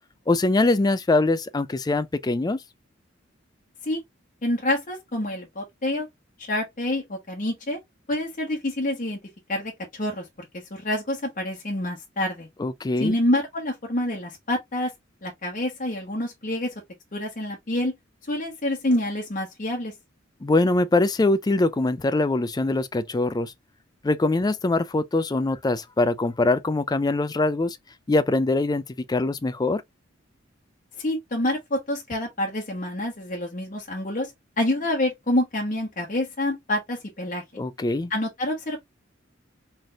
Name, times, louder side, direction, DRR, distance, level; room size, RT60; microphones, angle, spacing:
voice 1, 0.3-2.6 12.6-13.1 20.4-23.5 24.0-27.8 28.1-28.8 29.1-29.8 37.6-38.1, left 2 dB, 20° left, 0.4 m, -23 dB
voice 2, 4.4-6.1 6.4-7.8 8.1-9.2 9.5-10.3 10.5-12.5 13.0-14.9 15.2-16.7 17.1-17.9 18.3-19.9 31.0-34.3 34.6-37.4 38.1-38.8, left 1 dB, 40° left, 1.1 m, -27 dB
4.0 x 3.3 x 2.4 m
head